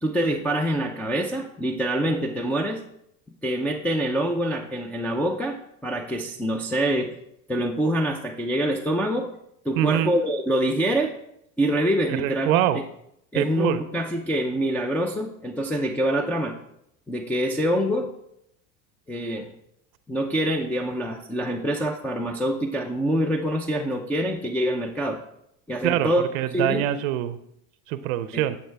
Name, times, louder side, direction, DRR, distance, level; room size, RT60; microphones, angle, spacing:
voice 1, 0.0-2.8 3.4-7.1 7.5-9.3 9.6-11.1 11.6-12.7 13.3-16.6 17.1-18.1 19.1-19.5 20.1-25.2 25.7-26.2 26.5-26.8 28.3-28.4, right 1 dB, 5° left, -2 dB, 0.5 m, -25 dB
voice 2, 9.8-10.1 12.1-12.8 13.3-13.8 25.8-27.4 27.9-28.6, right 12 dB, 90° right, 12 dB, 0.6 m, -24 dB
8.8 x 7.2 x 3.4 m, 0.76 s
supercardioid pair, 115°, 40 cm